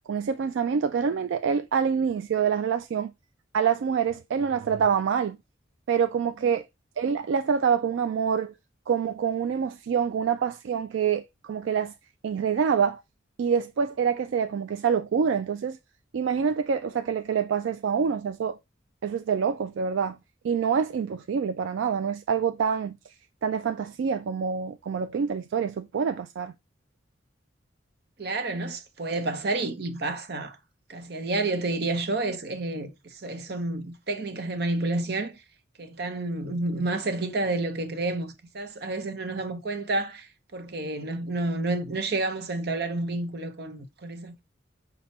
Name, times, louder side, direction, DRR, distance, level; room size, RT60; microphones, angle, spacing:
voice 1, 0.1-3.1 3.5-5.4 5.9-6.6 7.0-8.5 8.9-11.9 12.2-13.0 13.4-15.8 16.1-18.6 19.0-20.2 20.4-23.0 23.4-26.5, right 7 dB, 75° right, 0.3 m, -26 dB
voice 2, 28.2-30.6 30.9-35.4 35.8-44.4, right 2 dB, 55° right, 0.8 m, -30 dB
5.8 x 2.2 x 4.1 m
head